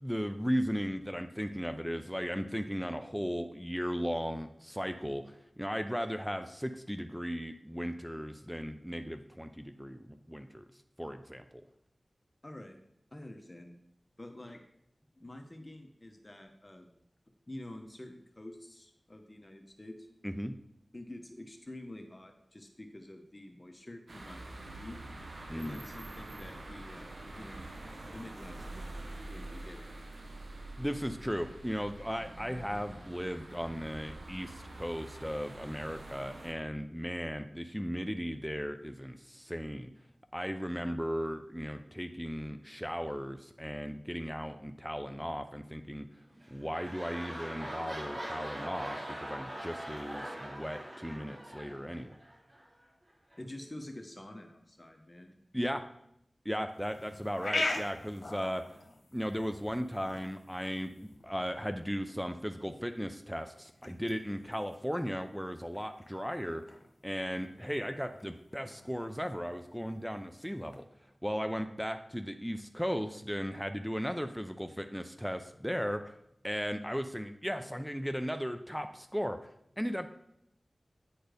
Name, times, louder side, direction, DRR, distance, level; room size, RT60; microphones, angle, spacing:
voice 1, 0.0-10.7 11.0-11.6 20.2-20.5 25.5-25.8 30.8-39.9 40.3-46.1 46.5-52.2 55.5-55.8 56.4-58.6 59.1-66.6 67.0-70.8 71.2-76.2 76.4-79.4 79.8-80.1, equal, ahead, 8 dB, 0.6 m, -36 dB
voice 2, 12.4-12.8 13.1-13.7 14.2-14.6 15.2-16.9 17.5-20.0 20.9-25.0 25.5-27.6 28.1-29.0 29.3-29.9 53.4-55.3, left 1 dB, 30° left, 4 dB, 1.2 m, -48 dB
sound 1, 24.1-36.5, right 2 dB, 75° right, 1.1 m, -46 dB
sound 2, 46.3-52.6 53.3-53.4, right 1 dB, 50° right, 2.5 m, -42 dB
sound 3, 56.7-70.8, left 2 dB, 75° left, 1.1 m, -43 dB
9.2 x 4.4 x 5.1 m, 0.76 s
cardioid pair, 45°, 0 cm